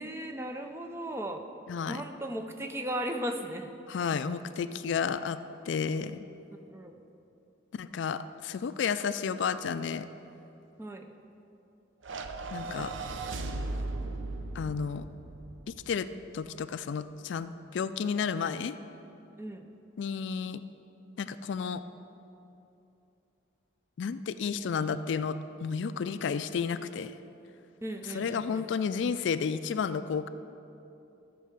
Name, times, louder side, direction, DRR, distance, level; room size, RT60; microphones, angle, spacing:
voice 1, 0.0-1.5 1.9-3.7 6.5-6.9 10.8-11.1 19.4-19.7 27.8-28.6, right 1 dB, 10° right, 5 dB, 0.5 m, -36 dB
voice 2, 1.7-2.0 3.9-5.4 5.7-6.3 7.7-10.1 12.5-12.9 14.5-15.0 15.7-16.1 16.3-18.7 20.0-20.6 21.2-21.8 24.0-27.1 28.0-30.3, left 6 dB, 65° left, 13 dB, 0.3 m, -32 dB
sound 1, 12.0-16.5, right 2 dB, 75° right, 0.6 m, -37 dB
13.5 x 4.6 x 6.7 m, 2.8 s
head